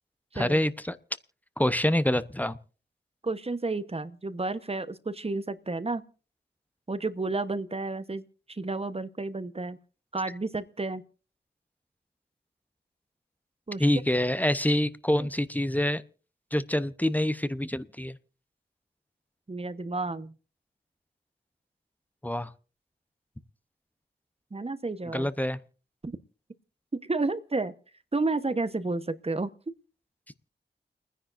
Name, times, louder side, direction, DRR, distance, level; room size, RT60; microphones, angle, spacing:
voice 1, 0.3-1.0 1.6-2.6 13.8-16.0 16.5-18.2 22.2-22.5 25.1-25.6, left 1 dB, 10° left, 0.8 m, -26 dB
voice 2, 3.2-6.0 6.9-9.8 10.1-11.0 13.7-13.9 15.2-15.3 19.5-20.3 24.5-25.3 26.0-26.1 26.9-27.7 28.1-29.5, right 3 dB, 35° right, 1.1 m, -31 dB
29.5 x 10.0 x 2.6 m
cardioid pair, 45°, 18 cm